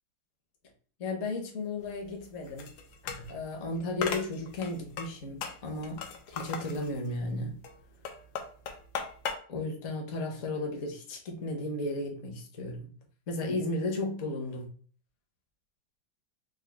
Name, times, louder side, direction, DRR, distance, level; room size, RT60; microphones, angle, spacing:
voice 1, 1.0-2.7 3.3-7.6 9.5-12.9 13.3-14.7, left 2 dB, 50° left, 1 dB, 1.1 m, -34 dB
sound 1, 1.8-9.4, left 6 dB, 70° left, 1.1 m, -38 dB
4.8 x 2.2 x 3.3 m, 0.43 s
omnidirectional pair, 2.1 m